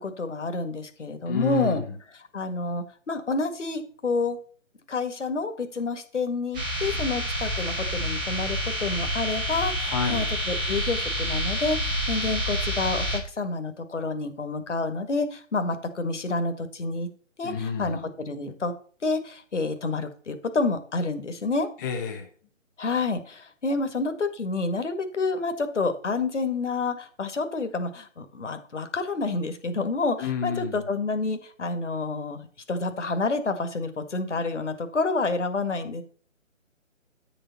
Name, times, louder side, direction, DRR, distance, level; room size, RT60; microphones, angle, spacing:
voice 1, 0.0-1.8 2.3-4.4 4.9-17.1 17.4-18.7 19.0-21.7 22.8-36.0, left 3 dB, 65° left, 8 dB, 2.0 m, -29 dB
voice 2, 1.3-1.9 9.9-10.3 17.4-18.0 21.8-22.3 30.2-30.8, left 6 dB, 15° left, 4 dB, 1.2 m, -29 dB
sound 1, 6.5-13.2, equal, 5° right, 0.7 m, -28 dB
9.9 x 7.0 x 4.2 m, 0.43 s
figure-of-eight pair, 145°, 39 cm